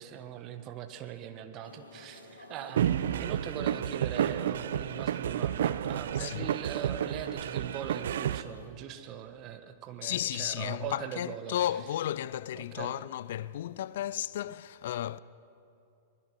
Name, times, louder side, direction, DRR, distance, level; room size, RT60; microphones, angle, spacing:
voice 1, 0.0-11.6 12.5-13.0, right 9 dB, 35° right, 1.5 m, -41 dB
sound 1, 1.6-8.7, left 1 dB, 80° left, 2.6 m, -52 dB
sound 2, 2.8-8.4, right 10 dB, 60° right, 0.6 m, -31 dB
voice 2, 6.1-6.5 10.0-15.2, left 11 dB, 55° left, 0.4 m, -34 dB
23.5 x 20.5 x 6.1 m
figure-of-eight pair, 95°, 0 cm